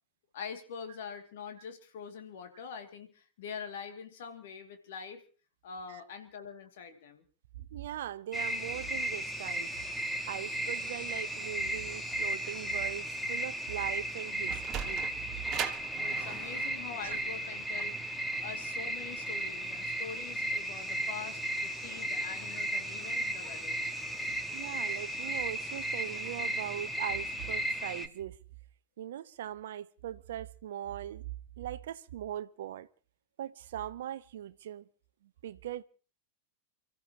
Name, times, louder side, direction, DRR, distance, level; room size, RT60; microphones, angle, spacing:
voice 1, 0.3-5.2 5.6-7.2 16.0-23.8, left 6 dB, 55° left, 2.4 m, -44 dB
voice 2, 7.5-9.8 10.3-15.1 17.0-17.2 24.5-28.4 29.0-31.3 31.6-32.9 33.4-34.9 35.2-35.8, right 11 dB, 60° right, 0.7 m, -40 dB
sound 1, 8.3-28.1, right 1 dB, 5° left, 1.5 m, -35 dB
Sliding door, 14.2-19.4, right 9 dB, 30° right, 1.6 m, -41 dB
29.0 x 14.5 x 3.0 m
figure-of-eight pair, 90°, 0 cm